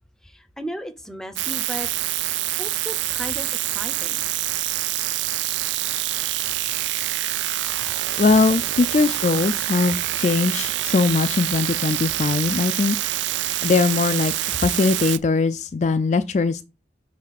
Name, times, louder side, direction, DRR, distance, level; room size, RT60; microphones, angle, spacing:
voice 1, 0.2-1.9 2.6-4.3 7.8-7.9, equal, 5° left, 0.6 m, -35 dB
sound 1, 1.4-15.2, right 14 dB, 90° right, 0.4 m, -26 dB
voice 2, 8.2-13.0 13.6-16.6, left 4 dB, 40° left, 0.3 m, -21 dB
6.3 x 3.3 x 5.8 m
head